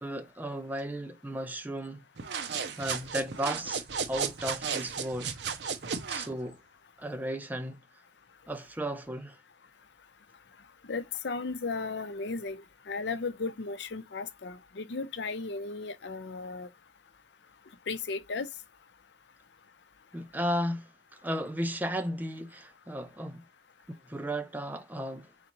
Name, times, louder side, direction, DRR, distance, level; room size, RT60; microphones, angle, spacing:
voice 1, 0.0-2.0 2.8-5.4 6.1-6.6 7.0-7.8 8.5-9.4 20.1-20.9 21.2-23.4 23.9-25.3, equal, 10° right, 0.5 m, -34 dB
sound 1, 2.2-6.3, right 6 dB, 75° right, 0.6 m, -34 dB
voice 2, 10.9-16.7 17.9-18.5, left 4 dB, 80° left, 0.6 m, -35 dB
4.0 x 3.6 x 2.9 m
head